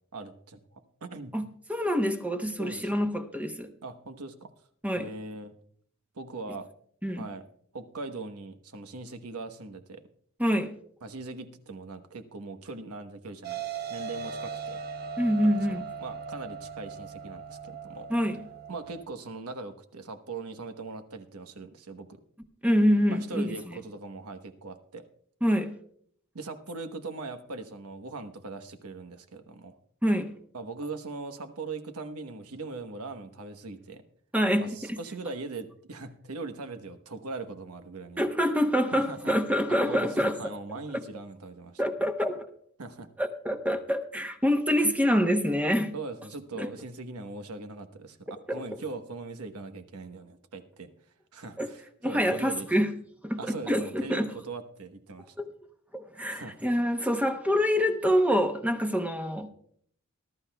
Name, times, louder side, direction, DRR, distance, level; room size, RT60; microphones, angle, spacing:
voice 1, 0.1-1.3 2.6-3.1 3.8-4.5 4.9-5.5 6.1-6.7 7.2-7.4 7.7-10.0 11.0-13.6 13.9-14.8 15.4-18.1 18.7-22.1 23.1-25.0 26.3-29.8 30.5-34.0 34.6-38.3 38.9-39.3 39.7-41.8 42.8-43.1 45.9-50.9 51.3-52.7 53.4-55.3 56.3-56.5, right 3 dB, 85° right, 1.1 m, -40 dB
voice 2, 1.7-3.7 4.8-5.1 7.0-7.3 10.4-10.7 15.2-15.8 18.1-18.4 22.6-23.6 25.4-25.7 30.0-30.3 34.3-35.0 38.2-40.4 41.8-42.5 43.2-45.9 46.6-46.7 48.5-48.6 51.6-51.7 52.0-52.9 53.2-54.3 55.4-55.5 55.9-59.5, equal, 5° right, 0.8 m, -26 dB
sound 1, 13.4-19.0, right 6 dB, 45° right, 0.8 m, -39 dB
20.5 x 12.0 x 2.3 m
head